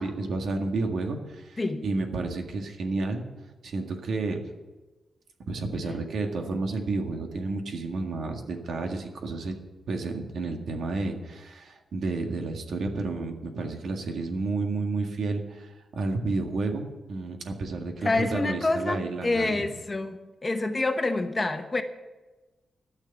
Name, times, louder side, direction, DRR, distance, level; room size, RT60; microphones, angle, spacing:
voice 1, 0.0-3.2 3.6-4.4 5.5-9.6 9.9-19.6, right 3 dB, 80° right, 3 dB, 1.9 m, -31 dB
voice 2, 18.0-21.8, left 2 dB, 25° left, 7 dB, 1.0 m, -27 dB
13.5 x 6.6 x 9.9 m, 1.2 s
wide cardioid pair, 140°, 0 cm